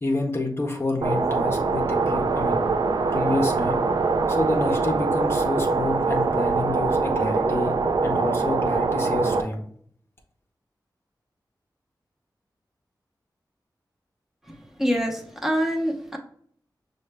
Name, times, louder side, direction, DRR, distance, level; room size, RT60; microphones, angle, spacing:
voice 1, 0.0-2.6 3.1-3.8 4.3-9.6, left 2 dB, 35° left, 2 dB, 0.6 m, -28 dB
sound 1, 1.0-9.4, right 4 dB, 65° right, 0.4 m, -23 dB
voice 2, 14.8-16.2, equal, 5° right, 1 dB, 0.7 m, -25 dB
6.0 x 2.1 x 3.3 m, 0.62 s
wide cardioid pair, 105°, 8 cm